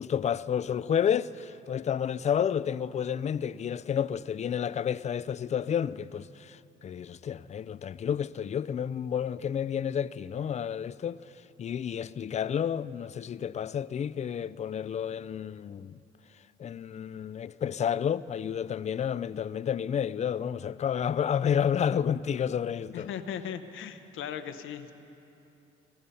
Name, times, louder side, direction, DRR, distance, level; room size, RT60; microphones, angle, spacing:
voice 1, 0.0-11.2 11.6-15.9 16.6-23.1, left 8 dB, 35° left, 0.4 m, -30 dB
voice 2, 22.9-24.9, left 8 dB, 80° left, 0.9 m, -38 dB
21.5 x 11.5 x 5.6 m
cardioid pair, 90°, 20 cm